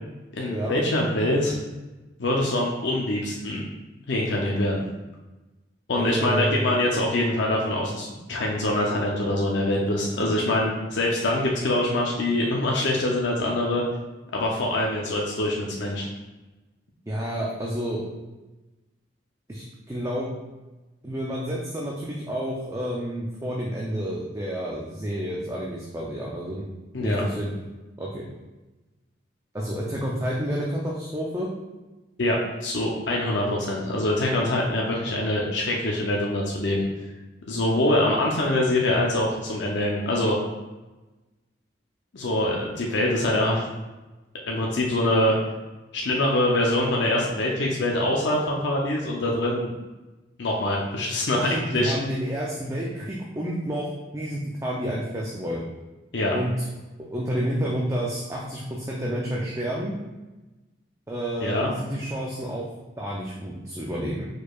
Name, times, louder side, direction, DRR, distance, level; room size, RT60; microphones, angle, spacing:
voice 1, 0.3-1.6 2.2-3.6 4.1-4.8 5.9-13.8 14.3-16.1 26.9-27.2 32.2-36.9 37.5-40.4 42.1-43.7 44.5-45.4 45.9-49.7 50.4-51.9 56.1-56.3 61.4-61.7, left 1 dB, 65° left, -2 dB, 0.6 m, -24 dB
voice 2, 5.9-6.7 17.1-18.0 19.5-20.3 21.0-26.7 27.0-27.5 28.0-28.2 29.5-31.5 51.3-55.6 56.3-56.5 57.0-60.0 61.1-62.7 63.0-64.3, equal, 15° right, -4 dB, 0.5 m, -30 dB
4.7 x 4.5 x 2.3 m, 1.1 s
head